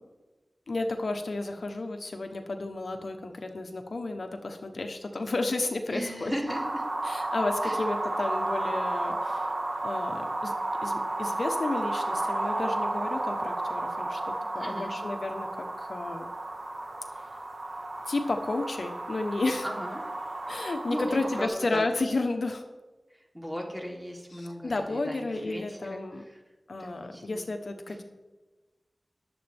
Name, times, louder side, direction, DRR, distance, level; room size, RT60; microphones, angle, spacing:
voice 1, 0.7-6.3 7.0-9.5 9.8-10.5 10.8-16.3 18.1-19.7 20.5-22.6 24.3-26.2 26.7-28.0, left 2 dB, 75° left, 5 dB, 1.1 m, -32 dB
voice 2, 5.9-6.8 7.6-7.8 14.6-15.0 19.6-20.0 20.9-21.8 23.3-26.4 26.8-27.5 27.9-28.0, equal, 10° right, -1 dB, 3.3 m, -37 dB
sound 1, 6.5-21.5, right 2 dB, 60° right, 1.6 m, -32 dB
20.0 x 7.9 x 3.6 m, 1.2 s
wide cardioid pair, 60°, 0 cm